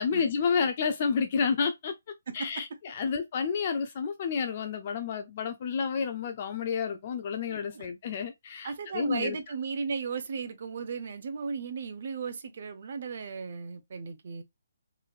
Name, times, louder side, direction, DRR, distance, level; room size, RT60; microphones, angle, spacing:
voice 1, 0.0-1.9 2.3-9.4, left 6 dB, 35° left, 0.3 m, -30 dB
voice 2, 2.3-2.6 7.5-7.9 8.6-14.4, right 5 dB, 50° right, 0.6 m, -36 dB
3.0 x 2.5 x 2.3 m
hypercardioid pair, 165°, 0 cm